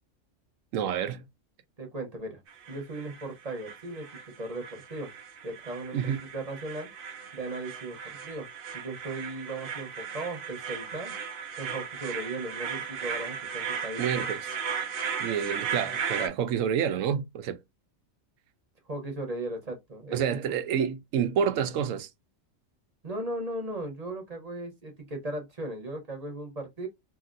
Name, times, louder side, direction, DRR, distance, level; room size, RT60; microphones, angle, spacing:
voice 1, 0.7-1.2 5.9-6.2 14.0-14.5 15.2-17.6 20.1-22.1, right 8 dB, 90° right, 1.0 m, -28 dB
voice 2, 1.8-2.4 2.7-4.1 4.4-5.1 5.4-6.9 7.3-8.5 8.7-11.1 11.6-14.0 18.9-20.5 23.0-26.9, right 2 dB, 35° right, 0.9 m, -37 dB
sound 1, 2.5-16.3, right 6 dB, 55° right, 0.7 m, -36 dB
2.8 x 2.8 x 2.5 m
omnidirectional pair, 1.3 m